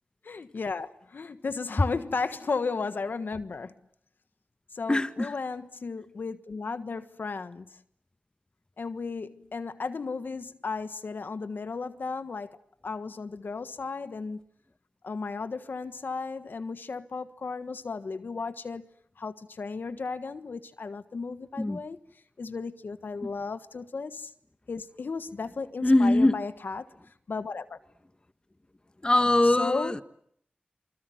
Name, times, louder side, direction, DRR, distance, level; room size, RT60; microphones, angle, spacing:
voice 1, 0.2-3.7 4.7-7.8 8.8-12.6 12.8-14.4 15.0-18.9 19.2-22.0 22.4-24.3 24.7-26.9 27.3-27.8 29.4-29.9, left 4 dB, 75° left, 1.4 m, -34 dB
voice 2, 4.9-5.3 21.6-21.8 25.8-26.4 29.0-30.0, left 1 dB, 25° left, 1.6 m, -22 dB
28.5 x 25.5 x 7.9 m
cardioid pair, 55°, 3 cm